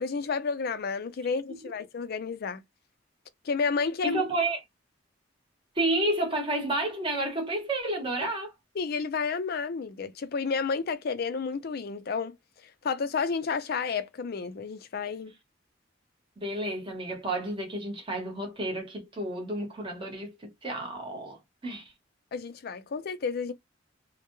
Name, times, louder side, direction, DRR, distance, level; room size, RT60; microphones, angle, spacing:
voice 1, 0.0-2.6 3.4-4.2 8.8-12.3 12.8-15.3 22.3-23.5, left 5 dB, 55° left, 0.4 m, -31 dB
voice 2, 4.0-4.6 5.7-8.5 16.4-21.8, right 1 dB, 25° right, 0.9 m, -31 dB
2.1 x 2.1 x 3.0 m
head